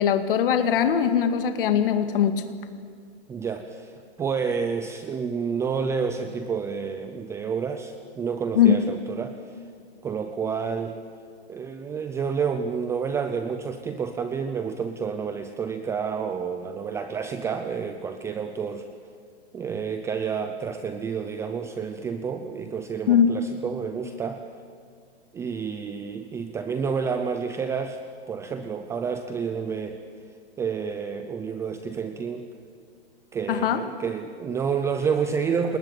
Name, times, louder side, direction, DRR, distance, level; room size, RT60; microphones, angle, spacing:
voice 1, 0.0-2.4 8.6-8.7 23.1-23.3 33.5-33.8, left 9 dB, 60° left, 8 dB, 2.1 m, -20 dB
voice 2, 3.3-9.6 10.0-11.0 11.5-18.8 19.5-24.4 25.3-28.0 28.3-30.0 30.6-32.5 33.3-35.8, right 6 dB, 10° right, 8 dB, 0.6 m, -29 dB
29.5 x 20.0 x 9.1 m, 2.2 s
hypercardioid pair, 155°, 31 cm